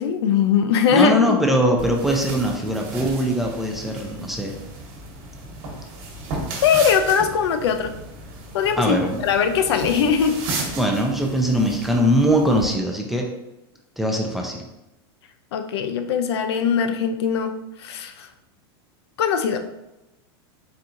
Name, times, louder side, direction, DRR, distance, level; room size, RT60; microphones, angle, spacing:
voice 1, 0.0-1.2 6.6-7.9 8.5-9.0 9.2-10.4 15.5-17.5 17.8-18.3 19.2-19.6, left 7 dB, 85° left, 8 dB, 0.5 m, -20 dB
voice 2, 0.9-4.5 8.8-9.2 10.7-13.3 14.0-14.6, equal, ahead, 0 dB, 0.3 m, -21 dB
sound 1, 1.8-12.7, right 2 dB, 50° right, 1.2 m, -34 dB
4.3 x 3.6 x 2.6 m, 0.94 s
supercardioid pair, 160°, 13 cm